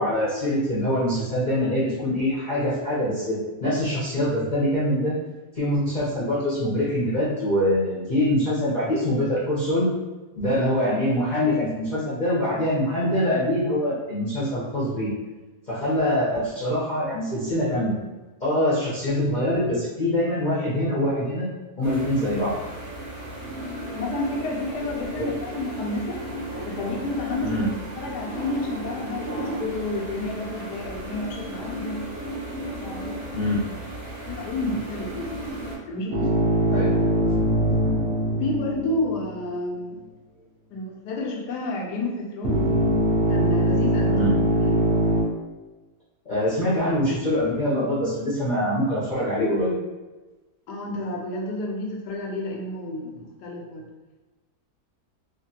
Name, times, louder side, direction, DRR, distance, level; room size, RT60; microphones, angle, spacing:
voice 1, 0.0-5.1 5.5-9.9 10.4-15.1 15.7-18.0 18.4-21.5 21.8-22.6 25.2-25.3 27.4-27.7 33.3-33.6 36.7-37.0 44.1-44.3 46.2-49.8, left 1 dB, 45° left, -9 dB, 0.6 m, -24 dB
sound 1, 21.8-35.8, right 1 dB, 50° right, 0.9 m, -35 dB
voice 2, 23.6-26.2 26.7-27.7 28.0-32.1 32.8-33.6 34.2-35.4 35.9-36.8 38.4-40.0 40.7-42.6 43.3-44.1 44.6-44.8 50.7-53.8, left 2 dB, 90° left, -1 dB, 1.2 m, -30 dB
sound 2, 36.1-39.5 42.4-45.2, equal, 75° right, 0.6 m, -22 dB
3.0 x 2.5 x 2.7 m, 1.2 s
omnidirectional pair, 1.7 m